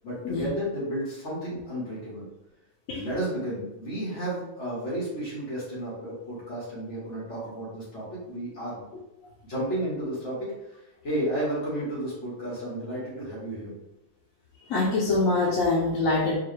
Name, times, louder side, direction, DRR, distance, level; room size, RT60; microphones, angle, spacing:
voice 1, 0.0-2.2 2.9-8.8 9.4-13.7, right 1 dB, 60° left, -8 dB, 1.6 m, -32 dB
voice 2, 14.7-16.4, left 3 dB, 85° left, -5 dB, 1.1 m, -24 dB
4.6 x 2.2 x 3.2 m, 0.92 s
omnidirectional pair, 1.4 m